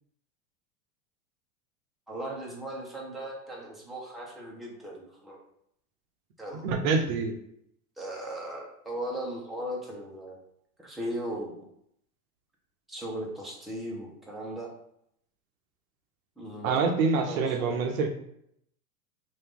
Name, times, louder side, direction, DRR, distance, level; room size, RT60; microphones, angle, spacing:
voice 1, 2.1-5.4 6.4-6.8 8.0-10.4 10.8-11.5 12.9-14.7 16.4-16.9 17.1-17.8, right 1 dB, ahead, -4 dB, 0.8 m, -37 dB
voice 2, 6.6-7.3 16.6-18.1, right 4 dB, 70° right, 4 dB, 0.7 m, -26 dB
2.8 x 2.6 x 3.6 m, 0.73 s
hypercardioid pair, 105°, 44 cm